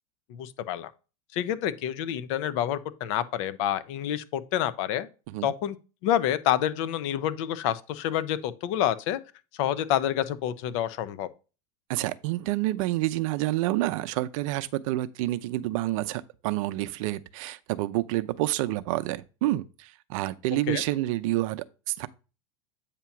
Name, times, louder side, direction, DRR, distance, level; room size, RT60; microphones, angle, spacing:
voice 1, 0.3-0.9 1.3-5.1 5.4-5.8 6.0-9.2 9.6-11.3 20.7-20.8, left 11 dB, 60° left, 0.7 m, -28 dB
voice 2, 11.9-22.1, right 16 dB, 65° right, 0.6 m, -28 dB
8.4 x 2.9 x 5.8 m
supercardioid pair, 120°, 18 cm